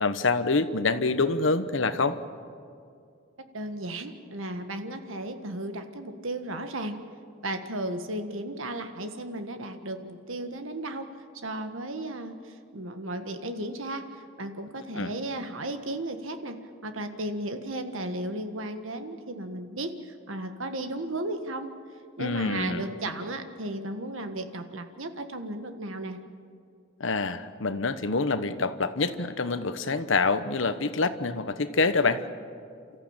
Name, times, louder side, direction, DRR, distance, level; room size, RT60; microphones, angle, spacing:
voice 1, 0.0-2.2 15.0-15.1 22.2-22.9 27.0-32.2, left 3 dB, 65° left, 11 dB, 1.1 m, -26 dB
voice 2, 3.5-7.0 7.4-11.1 11.4-14.1 14.4-16.6 16.8-21.7 22.2-26.2, right 1 dB, 75° right, 7 dB, 1.6 m, -35 dB
29.0 x 14.0 x 8.9 m, 2.4 s
head